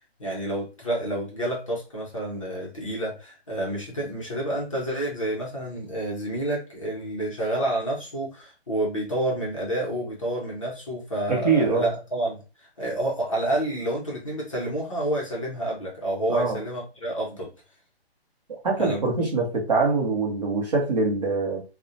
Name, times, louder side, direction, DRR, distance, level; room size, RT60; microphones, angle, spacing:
voice 1, 0.2-17.5 18.8-19.3, right 1 dB, 30° left, -3 dB, 0.5 m, -29 dB
voice 2, 11.3-11.9 16.3-16.6 18.5-21.6, right 4 dB, 40° right, -2 dB, 0.8 m, -24 dB
2.3 x 2.1 x 2.6 m, 0.31 s
hypercardioid pair, 170°, 32 cm